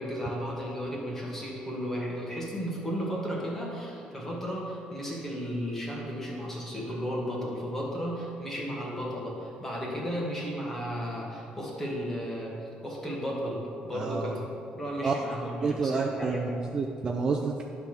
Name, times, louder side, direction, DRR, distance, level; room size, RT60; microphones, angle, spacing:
voice 1, 0.0-16.7, equal, 10° left, -3 dB, 1.4 m, -34 dB
voice 2, 13.9-14.4 15.0-15.2 15.4-17.6, right 4 dB, 30° right, 1 dB, 0.4 m, -29 dB
10.0 x 3.4 x 5.9 m, 2.6 s
cardioid pair, 165°, 3 cm